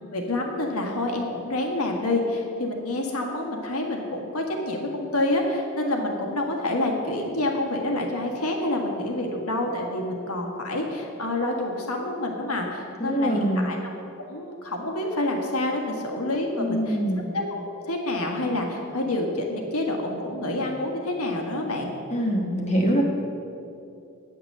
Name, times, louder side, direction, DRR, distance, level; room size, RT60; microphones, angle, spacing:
voice 1, 0.1-13.8 14.3-17.0 17.3-17.6 17.9-21.9, left 1 dB, 85° left, 1 dB, 1.6 m, -27 dB
voice 2, 13.0-13.7 16.6-17.2 22.1-23.0, equal, 30° left, -1 dB, 1.2 m, -24 dB
9.0 x 6.0 x 7.6 m, 2.7 s
head